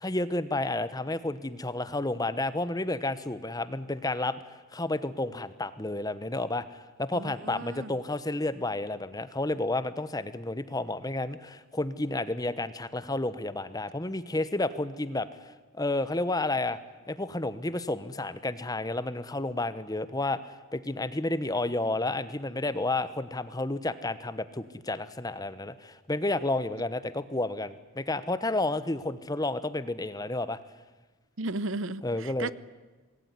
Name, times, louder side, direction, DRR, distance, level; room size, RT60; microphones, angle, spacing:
voice 1, 0.0-4.4 4.7-16.8 17.1-30.6 32.0-32.5, left 2 dB, 20° left, 14 dB, 1.1 m, -31 dB
voice 2, 7.1-8.0 31.4-32.5, right 2 dB, 65° right, 17 dB, 0.9 m, -35 dB
26.5 x 20.0 x 9.8 m, 1.2 s
head